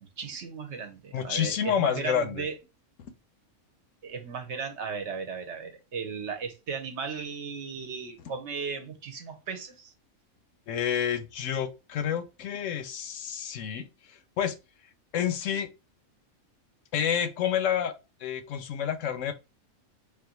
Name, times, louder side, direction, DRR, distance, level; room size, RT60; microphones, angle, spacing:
voice 1, 0.0-2.5 4.0-9.9, right 5 dB, 60° right, 1.0 m, -36 dB
voice 2, 1.1-2.5 10.7-14.5 15.1-15.7 16.9-17.9 18.2-19.3, left 8 dB, 70° left, 0.9 m, -29 dB
3.7 x 3.3 x 2.9 m
omnidirectional pair, 1.5 m